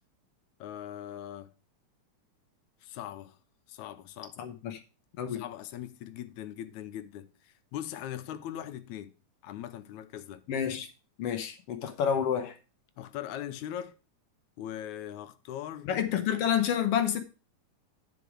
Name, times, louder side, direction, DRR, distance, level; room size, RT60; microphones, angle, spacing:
voice 1, 0.6-1.5 2.8-3.4 3.7-4.4 5.3-9.2 9.4-10.5 13.0-14.0 14.6-15.9, left 11 dB, 80° left, 2.0 m, -40 dB
voice 2, 4.4-4.8 5.2-5.4 10.5-10.9 11.2-12.6 15.8-17.2, left 8 dB, 65° left, 1.6 m, -29 dB
10.5 x 5.1 x 4.8 m
omnidirectional pair, 3.5 m